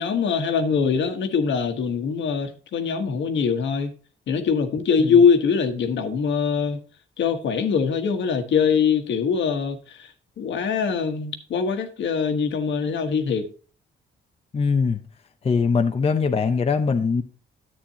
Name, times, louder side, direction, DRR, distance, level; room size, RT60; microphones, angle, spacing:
voice 1, 0.0-3.9 4.3-6.8 7.2-10.1 10.4-13.4, left 6 dB, 70° left, 1.3 m, -22 dB
voice 2, 14.5-15.0 15.4-17.2, left 5 dB, 30° left, 0.7 m, -21 dB
10.5 x 8.4 x 2.8 m
cardioid pair, 90°, 20 cm